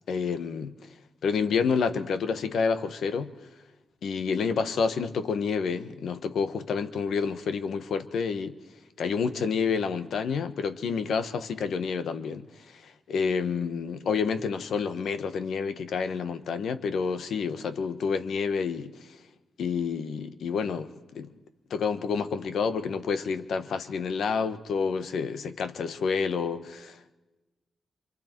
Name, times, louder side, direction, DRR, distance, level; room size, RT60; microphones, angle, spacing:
voice 1, 0.1-0.7 1.2-3.3 4.0-8.6 9.0-19.0 19.6-21.3 21.7-27.1, left 5 dB, 75° left, 1.3 m, -29 dB
26.5 x 26.5 x 4.6 m
wide cardioid pair, 140°, 0 cm